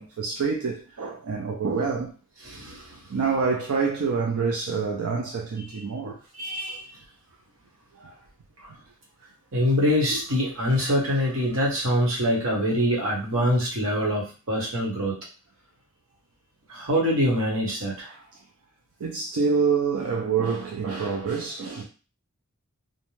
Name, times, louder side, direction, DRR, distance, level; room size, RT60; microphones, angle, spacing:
voice 1, 0.0-2.2 3.1-6.2 8.0-8.1 18.1-18.2 19.0-21.8, right 5 dB, 85° right, 0.4 m, -27 dB
voice 2, 2.4-3.1 5.7-7.0 8.6-8.7 9.5-15.1 16.7-18.1, equal, 70° right, 1.1 m, -25 dB
2.6 x 2.1 x 3.0 m
head